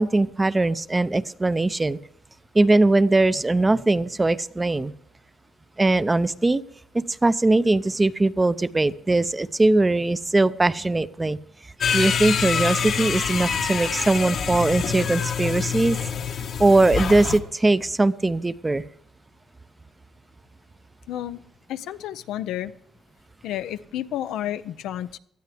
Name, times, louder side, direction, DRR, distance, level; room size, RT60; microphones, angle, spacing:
voice 1, 0.0-2.0 2.5-4.9 5.8-6.6 6.9-11.4 11.9-16.0 16.6-18.8, right 2 dB, 20° right, 15 dB, 0.6 m, -20 dB
sound 1, 11.8-17.4, left 7 dB, 65° left, 1.3 m, -26 dB
voice 2, 21.1-21.4 21.7-22.7 23.4-25.2, left 12 dB, 85° left, 12 dB, 0.6 m, -31 dB
18.5 x 12.5 x 3.4 m, 0.70 s
cardioid pair, 90°, 0 cm